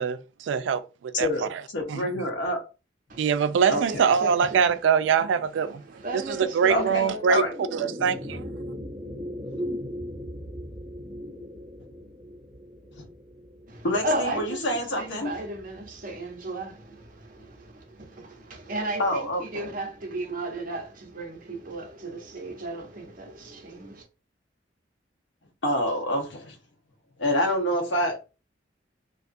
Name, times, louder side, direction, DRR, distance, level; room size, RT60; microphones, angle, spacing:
voice 1, 0.0-1.6 1.9-2.1 3.2-5.8 6.1-7.4 7.7-8.4, right 6 dB, 85° right, 0.3 m, -24 dB
voice 2, 1.1-1.5 1.7-2.6 3.7-4.0 6.7-7.5 12.9-13.0 13.8-15.3 19.0-19.7 25.6-26.5 27.2-28.2, left 1 dB, 85° left, 0.9 m, -27 dB
voice 3, 3.1-3.4 3.7-4.7 5.9-7.2 13.7-24.0, right 2 dB, 50° right, 0.7 m, -35 dB
sound 1, 6.6-17.1, equal, 10° right, 0.6 m, -39 dB
2.6 x 2.3 x 2.5 m
head